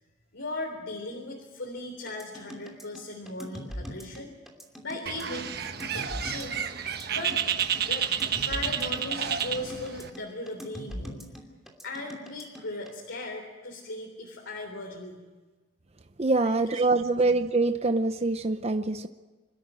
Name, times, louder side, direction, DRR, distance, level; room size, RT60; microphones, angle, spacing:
voice 1, 0.3-4.3 4.8-6.7 7.1-7.4 7.9-11.2 11.8-15.2 16.4-17.2, left 2 dB, 90° left, -1 dB, 3.5 m, -38 dB
sound 1, 2.1-12.9, equal, ahead, 2.8 m, -41 dB
Bird, 5.1-10.1, right 8 dB, 55° right, 1.2 m, -30 dB
voice 2, 16.2-19.1, right 3 dB, 35° right, 9 dB, 0.7 m, -25 dB
26.5 x 13.0 x 9.0 m, 1.3 s
head